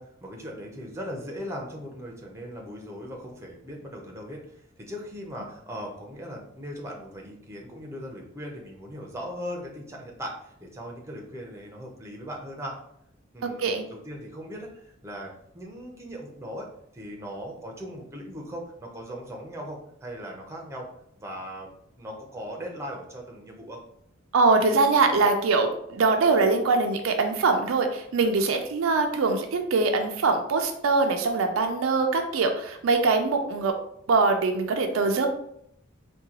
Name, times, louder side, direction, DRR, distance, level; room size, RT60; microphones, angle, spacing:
voice 1, 0.0-12.8 13.3-16.7 16.9-20.9 21.2-23.8, equal, 15° right, 0 dB, 0.6 m, -39 dB
voice 2, 13.4-13.8 24.3-33.7 34.1-35.3, right 3 dB, 70° right, 5 dB, 0.4 m, -23 dB
3.7 x 2.2 x 2.8 m, 0.71 s
head